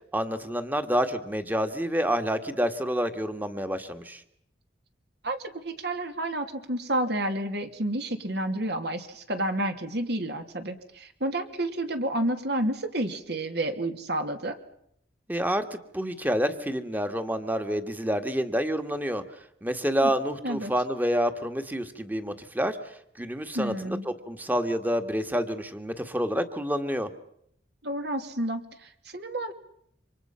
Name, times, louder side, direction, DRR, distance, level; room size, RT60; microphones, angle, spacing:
voice 1, 0.1-4.2 15.3-19.2 19.6-22.8 23.2-27.1, equal, 10° right, 8 dB, 1.8 m, -28 dB
voice 2, 5.2-14.6 20.0-20.1 20.4-20.7 23.5-24.0 27.8-29.5, right 1 dB, 60° right, 6 dB, 2.8 m, -30 dB
28.0 x 26.0 x 5.7 m, 0.71 s
head